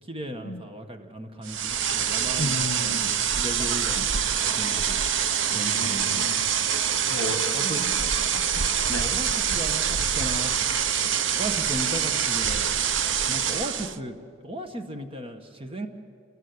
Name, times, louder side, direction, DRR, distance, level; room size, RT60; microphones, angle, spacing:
voice 1, 0.0-5.0 5.5-6.2 7.5-7.8 8.9-10.6 11.3-12.7 13.2-14.1 14.4-15.9, right 1 dB, 30° right, 6 dB, 1.6 m, -36 dB
sound 1, 1.4-14.0, right 8 dB, 70° right, 0.8 m, -25 dB
voice 2, 2.4-3.1 3.9-4.1 5.5-6.8 7.1-9.2 9.5-9.6 11.0-11.2, left 2 dB, 65° left, 11 dB, 1.3 m, -35 dB
29.0 x 21.0 x 9.7 m, 2.2 s
head